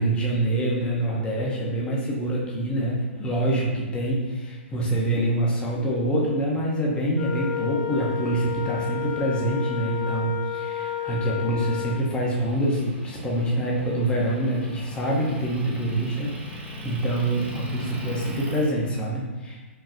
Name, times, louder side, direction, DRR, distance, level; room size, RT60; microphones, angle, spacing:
voice 1, 0.0-19.6, right 1 dB, 15° left, -3 dB, 0.9 m, -26 dB
Wind instrument woodwind instrument, 7.2-12.0, left 10 dB, 40° left, 0.3 m, -31 dB
Motor vehicle (road) / Engine, 12.3-18.7, left 1 dB, 20° right, 0.8 m, -38 dB
4.9 x 3.2 x 2.6 m, 1.2 s
figure-of-eight pair, 110°, 7 cm